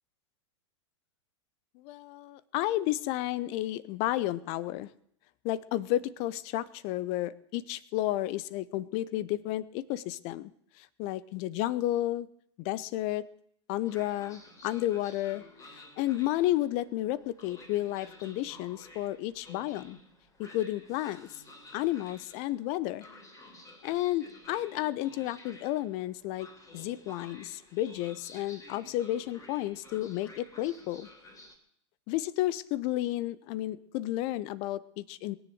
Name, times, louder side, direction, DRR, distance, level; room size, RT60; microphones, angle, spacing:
voice 1, 1.8-4.9 5.4-10.5 10.8-12.3 12.6-13.2 13.7-20.0 20.4-21.3 21.7-23.1 23.8-26.5 26.7-31.1 32.1-35.4, left 15 dB, 45° left, 20 dB, 0.8 m, -32 dB
Train, 13.8-31.6, left 1 dB, 20° left, 3.5 m, -53 dB
21.5 x 7.2 x 7.8 m, 0.70 s
hypercardioid pair, 100°, 16 cm